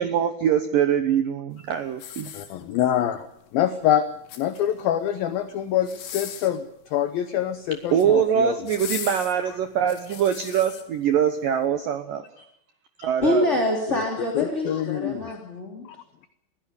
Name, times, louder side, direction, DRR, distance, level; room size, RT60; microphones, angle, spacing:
voice 1, 0.0-2.3 7.9-12.2 13.0-13.5, right 9 dB, 90° right, 9 dB, 1.9 m, -23 dB
sound 1, 1.9-3.0 4.1-4.9 5.8-6.6 7.7-8.1 8.7-10.8 11.4-11.6, left 10 dB, 70° left, 4.3 m, -38 dB
voice 2, 2.3-3.3 3.5-4.1 4.4-8.5 13.0-13.1 13.9-14.0 14.4-15.3 15.9-16.0, left 10 dB, 90° left, 11 dB, 2.0 m, -25 dB
voice 3, 13.2-15.8, left 1 dB, 20° left, 0 dB, 2.1 m, -25 dB
22.5 x 16.0 x 8.3 m, 0.78 s
omnidirectional pair, 5.7 m